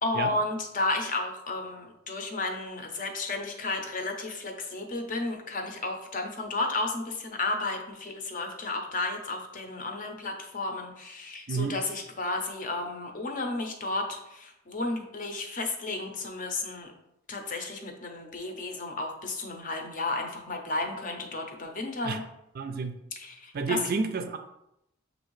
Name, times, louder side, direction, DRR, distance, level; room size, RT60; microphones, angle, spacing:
voice 1, 0.0-16.9 17.3-22.2 23.2-23.8, left 2 dB, 40° left, 3 dB, 0.6 m, -33 dB
voice 2, 22.6-23.0 23.5-24.4, right 4 dB, 45° right, 7 dB, 0.4 m, -30 dB
6.5 x 2.6 x 3.1 m, 0.83 s
head